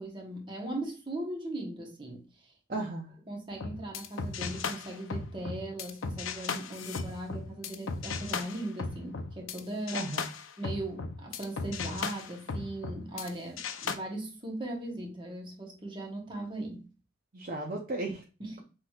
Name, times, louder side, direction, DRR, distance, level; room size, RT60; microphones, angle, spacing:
voice 1, 0.0-2.2 2.7-2.9 3.3-10.1 10.6-16.8 18.4-18.6, right 1 dB, 25° right, 1.0 m, -38 dB
voice 2, 2.7-3.1 9.9-10.2 17.3-18.2, right 2 dB, 45° right, 0.6 m, -35 dB
sound 1, 3.5-9.6 9.9-13.3 13.6-13.9, left 4 dB, 80° left, 0.5 m, -36 dB
5.9 x 3.1 x 2.3 m
head